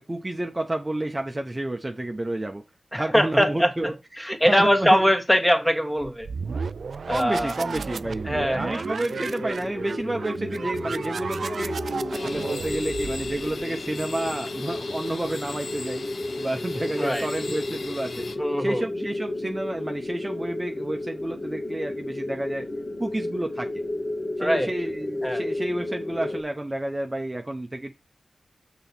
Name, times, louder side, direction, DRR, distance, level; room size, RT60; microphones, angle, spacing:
voice 1, 0.0-2.6 2.9-5.1 7.1-11.8 12.1-16.0 16.4-18.3 18.6-22.7 23.0-23.8 24.4-27.9, right 1 dB, 25° right, 0.9 m, -30 dB
voice 2, 2.9-3.7 4.2-6.3 7.1-7.5 8.2-8.8 17.0-17.3 18.4-18.8 24.4-24.7 25.2-25.4, equal, 5° left, 1.6 m, -22 dB
sound 1, 6.0-13.7, right 5 dB, 75° right, 0.4 m, -33 dB
sound 2, 9.1-26.4, left 1 dB, 55° left, 1.8 m, -32 dB
sound 3, 12.1-18.4, left 4 dB, 70° left, 0.9 m, -39 dB
6.3 x 4.1 x 5.9 m
wide cardioid pair, 75°, 0 cm